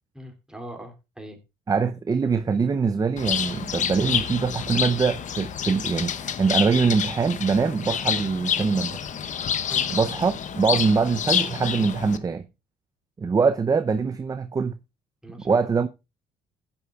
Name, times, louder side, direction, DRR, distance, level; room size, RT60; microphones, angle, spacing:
voice 1, 0.1-1.4 9.7-10.0 15.2-15.8, equal, 5° right, 2.8 m, -41 dB
voice 2, 1.7-9.0 9.9-12.4 13.2-14.8 15.4-15.9, right 5 dB, 20° right, 0.6 m, -23 dB
Bird, 3.2-12.2, left 8 dB, 45° left, 0.9 m, -28 dB
15.5 x 9.8 x 2.4 m
cardioid pair, 110°, 17 cm